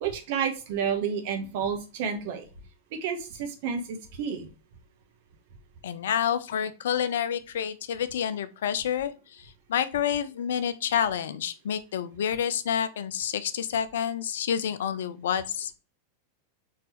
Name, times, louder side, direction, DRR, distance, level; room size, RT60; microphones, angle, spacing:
voice 1, 0.0-2.5 2.9-4.5, right 7 dB, 50° right, 1.0 m, -30 dB
voice 2, 5.8-15.7, left 8 dB, 60° left, 0.4 m, -29 dB
4.5 x 3.8 x 3.1 m
figure-of-eight pair, 90°, 0 cm